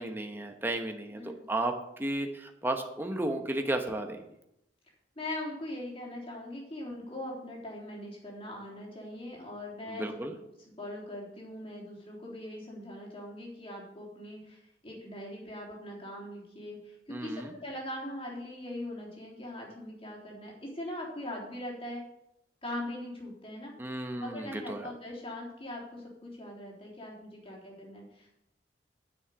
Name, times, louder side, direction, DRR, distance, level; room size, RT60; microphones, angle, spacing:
voice 1, 0.0-4.2 9.9-10.3 17.1-17.5 23.8-24.9, right 1 dB, 10° right, 4 dB, 1.0 m, -33 dB
voice 2, 5.2-10.3 10.8-22.0 22.6-23.7 24.1-28.4, left 1 dB, 30° left, -3 dB, 3.5 m, -41 dB
9.6 x 6.4 x 8.1 m, 0.82 s
head